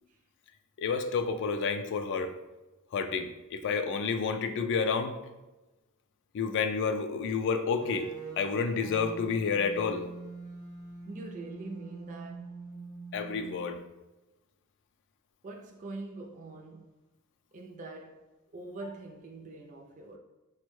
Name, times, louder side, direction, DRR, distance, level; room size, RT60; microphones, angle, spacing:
voice 1, 0.8-2.3 2.9-5.2 6.3-8.1 8.4-10.0 13.1-13.8, left 5 dB, 55° left, 0.3 m, -30 dB
sound 1, 7.8-13.9, right 3 dB, 70° right, 0.7 m, -44 dB
voice 2, 11.0-12.5 15.4-16.9 17.5-18.2 18.5-20.2, right 2 dB, 35° right, 0.4 m, -44 dB
4.2 x 2.1 x 3.0 m
head